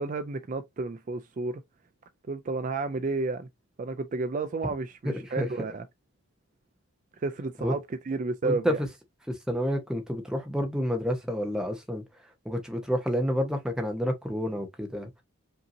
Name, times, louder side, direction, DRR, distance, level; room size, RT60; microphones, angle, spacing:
voice 1, 0.0-1.6 2.3-3.5 3.8-5.8 7.2-7.8 8.1-8.8, right 3 dB, 35° right, 0.3 m, -31 dB
voice 2, 5.0-5.5 7.6-7.7 8.4-8.9 9.3-12.0 12.4-15.1, equal, 5° right, 0.8 m, -29 dB
5.3 x 2.8 x 2.6 m
head